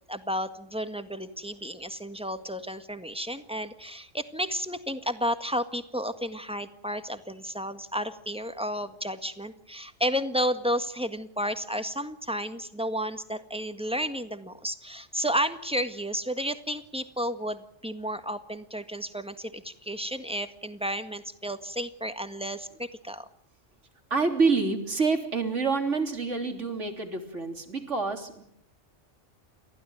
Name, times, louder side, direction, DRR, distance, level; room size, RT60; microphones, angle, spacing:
voice 1, 0.1-23.3, equal, 5° right, 9 dB, 1.7 m, -32 dB
voice 2, 24.1-28.4, right 4 dB, 75° right, 5 dB, 3.7 m, -27 dB
30.0 x 15.0 x 9.4 m, 0.72 s
omnidirectional pair, 1.3 m